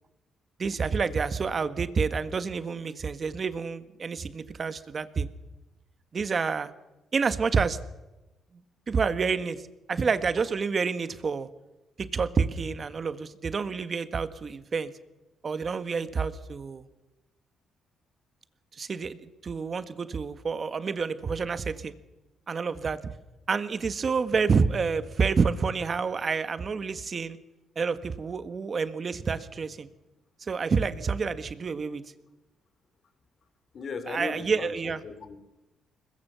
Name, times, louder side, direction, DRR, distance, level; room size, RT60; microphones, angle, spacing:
voice 1, 0.6-5.3 6.1-6.7 7.1-7.8 8.9-9.6 9.9-11.5 12.0-14.9 15.4-16.8 18.7-21.9 22.5-23.0 23.5-27.4 27.7-29.9 30.4-32.0 34.1-35.0, right 5 dB, 40° right, 12 dB, 1.5 m, -28 dB
voice 2, 33.7-35.4, left 4 dB, 50° left, 11 dB, 3.2 m, -37 dB
22.0 x 21.0 x 7.0 m, 1.0 s
cardioid pair, 90°, 0 cm